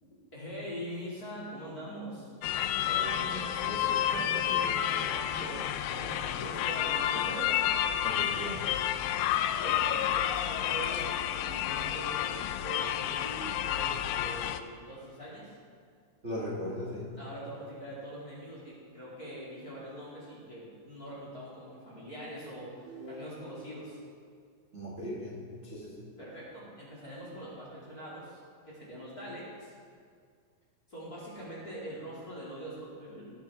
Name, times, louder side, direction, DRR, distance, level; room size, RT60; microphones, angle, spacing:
voice 1, 0.3-2.3 5.1-5.6 5.9-8.0 9.5-15.5 17.2-22.7 23.1-24.0 26.2-28.4 28.6-29.7 30.9-33.3, right 1 dB, 25° left, -7 dB, 2.8 m, -43 dB
sound 1, 2.4-14.6, left 10 dB, 85° left, 2.4 m, -30 dB
voice 2, 2.7-5.8 8.0-8.7 16.2-17.1 24.7-26.1, equal, 80° right, -6 dB, 0.6 m, -40 dB
sound 2, 22.8-23.8, equal, 20° right, 3.6 m, -46 dB
17.0 x 8.5 x 3.7 m, 2.1 s
omnidirectional pair, 4.2 m